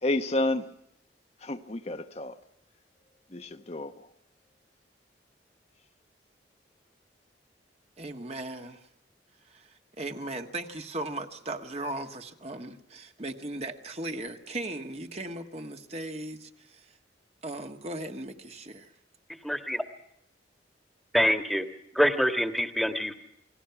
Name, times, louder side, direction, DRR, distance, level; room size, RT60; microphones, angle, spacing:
voice 1, 0.0-0.7 1.4-2.4 3.3-3.9, left 2 dB, 35° left, 0.9 m, -30 dB
voice 2, 8.0-8.8 9.5-9.7 10.0-16.8 17.4-18.9, right 2 dB, 35° right, 1.5 m, -37 dB
voice 3, 19.4-19.8 21.1-21.7 21.9-23.1, equal, ahead, 1.6 m, -25 dB
29.0 x 19.5 x 5.9 m
head